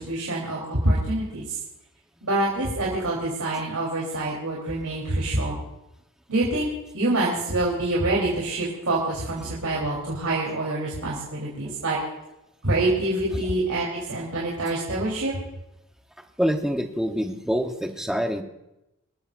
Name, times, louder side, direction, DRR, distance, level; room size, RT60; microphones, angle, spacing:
voice 1, 0.0-1.6 2.2-5.6 6.3-6.7 6.9-12.0 12.6-15.3, right 2 dB, 90° right, -5 dB, 3.6 m, -26 dB
voice 2, 16.4-18.4, equal, ahead, 4 dB, 0.9 m, -25 dB
26.5 x 13.5 x 2.6 m, 0.91 s
head